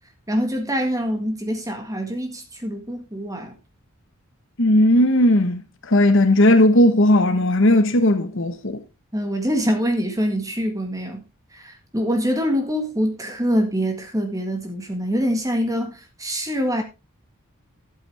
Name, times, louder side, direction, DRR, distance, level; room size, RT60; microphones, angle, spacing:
voice 1, 0.3-3.6 9.1-11.2 11.5-16.8, equal, 15° right, 1.8 m, -24 dB
voice 2, 4.6-5.6 5.9-8.8, left 1 dB, 55° left, 1.2 m, -16 dB
11.5 x 8.4 x 3.4 m
head